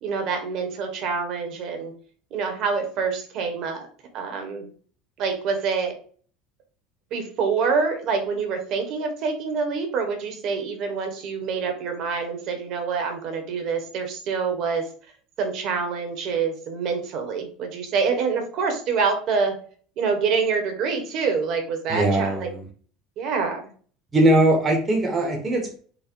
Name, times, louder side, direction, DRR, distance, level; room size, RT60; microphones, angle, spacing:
voice 1, 0.0-1.9 2.3-3.9 4.1-4.7 5.2-5.9 7.1-14.9 15.4-19.6 20.0-22.5 23.2-23.7, right 5 dB, 50° right, 5 dB, 1.1 m, -26 dB
voice 2, 21.9-22.6 24.1-25.8, right 1 dB, 20° right, 1 dB, 0.9 m, -20 dB
4.1 x 2.1 x 4.3 m, 0.43 s
cardioid pair, 150°, 0 cm